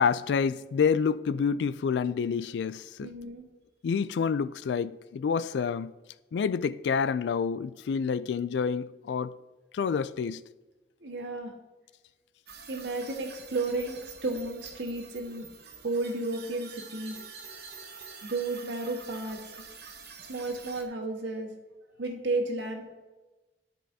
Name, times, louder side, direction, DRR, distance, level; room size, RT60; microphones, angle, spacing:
voice 1, 0.0-3.1 3.8-5.9 6.3-9.4 9.7-10.4, left 6 dB, 75° left, 0.3 m, -28 dB
voice 2, 3.0-3.4 11.0-11.5 12.7-15.5 15.8-17.2 18.2-19.8 20.3-21.5 22.0-22.8, right 2 dB, 85° right, 1.5 m, -33 dB
sound 1, 12.5-20.8, right 5 dB, 60° right, 1.0 m, -47 dB
12.0 x 5.4 x 2.7 m
head